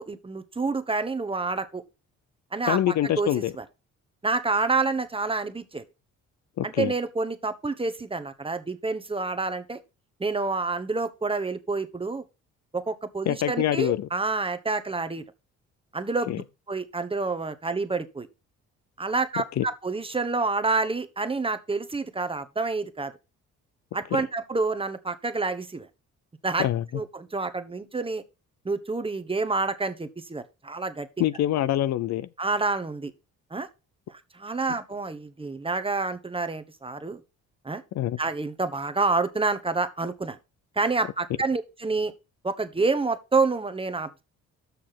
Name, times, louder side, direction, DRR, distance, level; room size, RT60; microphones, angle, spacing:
voice 1, 0.0-1.8 2.5-3.3 3.6-3.7 4.2-5.8 6.6-9.8 10.2-12.2 12.7-15.2 15.9-16.4 16.7-18.3 19.0-23.1 23.9-25.9 26.4-26.7 26.9-28.2 28.6-31.1 32.4-33.1 33.5-33.7 34.1-37.2 37.6-37.8 38.2-40.4 40.8-42.1 42.4-44.2, right 3 dB, 20° right, 1.0 m, -28 dB
voice 2, 2.7-3.5 6.6-6.9 13.3-14.1 16.3-16.4 19.6-19.7 24.1-24.2 26.6-26.8 31.2-32.3 37.9-38.2, left 12 dB, 65° left, 0.6 m, -25 dB
6.8 x 6.3 x 5.7 m
cardioid pair, 90°, 30 cm